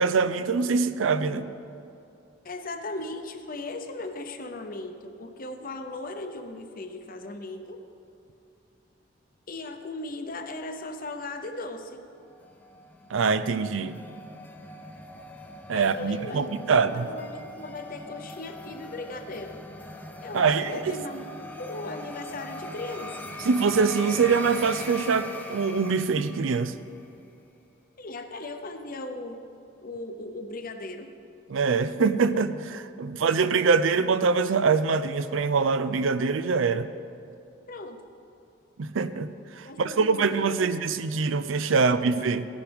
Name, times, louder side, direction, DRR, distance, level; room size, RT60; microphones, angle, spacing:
voice 1, 0.0-1.4 13.1-13.9 15.7-17.1 20.3-21.0 23.5-26.7 31.5-36.9 38.8-42.5, right 5 dB, 85° right, 12 dB, 0.5 m, -24 dB
voice 2, 2.4-7.8 9.5-12.0 15.7-19.6 20.2-23.3 28.0-29.4 29.8-31.1 37.7-38.0 39.6-40.8 41.7-42.1, left 2 dB, 50° left, 7 dB, 0.8 m, -38 dB
sound 1, 12.3-26.9, left 1 dB, 10° left, 0.7 m, -41 dB
16.0 x 10.5 x 3.5 m, 2.6 s
head